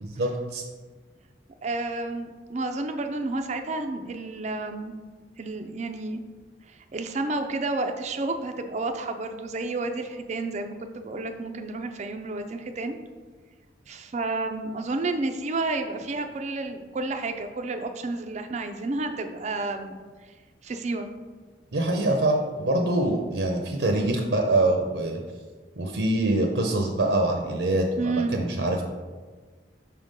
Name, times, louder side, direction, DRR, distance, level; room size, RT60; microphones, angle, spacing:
voice 1, 0.0-0.6 21.7-25.2 25.8-28.8, right 2 dB, 75° right, 2 dB, 0.7 m, -24 dB
voice 2, 1.6-5.0 5.4-6.2 6.7-13.0 13.9-20.0 20.6-21.1 28.0-28.3, right 2 dB, 40° right, 6 dB, 0.4 m, -31 dB
5.6 x 3.6 x 5.3 m, 1.4 s
head